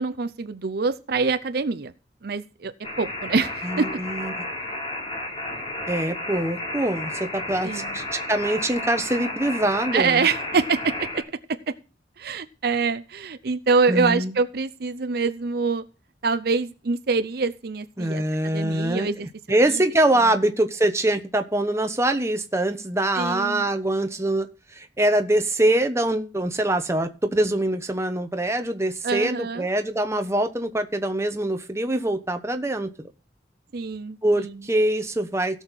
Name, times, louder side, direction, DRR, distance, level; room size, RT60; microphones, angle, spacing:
voice 1, 0.0-1.9 2.2-2.7 3.0-3.9 7.6-7.9 9.9-11.2 11.7-11.8 12.2-15.8 16.2-19.3 19.7-19.8 20.1-20.3 23.1-23.7 29.0-29.7 33.7-34.6, right 4 dB, 60° right, 12 dB, 0.6 m, -25 dB
sound 1, 2.8-11.2, left 1 dB, 30° left, 3.3 m, -32 dB
voice 2, 3.6-4.3 5.9-10.3 13.9-14.3 18.0-19.1 19.5-24.5 24.7-32.9 34.2-35.6, right 1 dB, 15° right, 7 dB, 0.9 m, -24 dB
16.5 x 6.4 x 4.1 m, 0.35 s
head